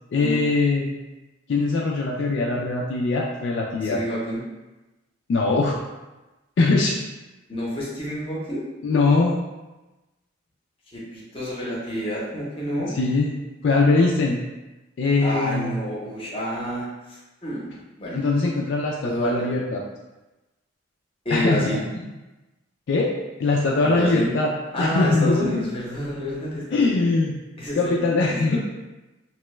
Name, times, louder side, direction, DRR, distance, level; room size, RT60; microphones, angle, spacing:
voice 1, 0.1-0.9 1.5-4.0 5.3-5.7 6.6-6.9 8.8-9.3 12.9-13.3 13.6-14.4 15.0-15.7 18.1-19.8 21.3-21.8 22.9-23.1 23.4-24.5 24.8-25.6 26.7-27.3 27.8-28.6, left 3 dB, 65° left, -2 dB, 0.3 m, -21 dB
voice 2, 3.8-4.4 7.5-8.6 10.9-12.9 15.2-17.7 18.0-18.2 19.0-19.3 21.2-21.8 23.8-24.3 24.7-27.0 27.6-28.0 28.3-28.6, equal, 25° left, -5 dB, 0.7 m, -29 dB
2.9 x 2.2 x 3.1 m, 1.1 s
head